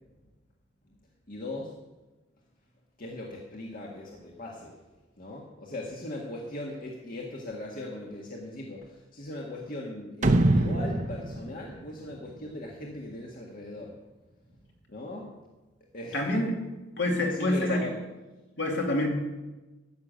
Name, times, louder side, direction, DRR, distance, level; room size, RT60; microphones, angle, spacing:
voice 1, 1.3-1.8 3.0-4.8 5.2-13.9 14.9-15.4 15.9-16.3 17.1-18.1, left 1 dB, 50° left, -2 dB, 1.7 m, -39 dB
sound 1, 10.2-12.7, right 2 dB, 40° right, 0.9 m, -25 dB
voice 2, 16.1-16.5 17.0-17.8 18.6-19.1, left 1 dB, 65° left, 0 dB, 2.7 m, -26 dB
14.0 x 6.7 x 9.1 m, 1.1 s
head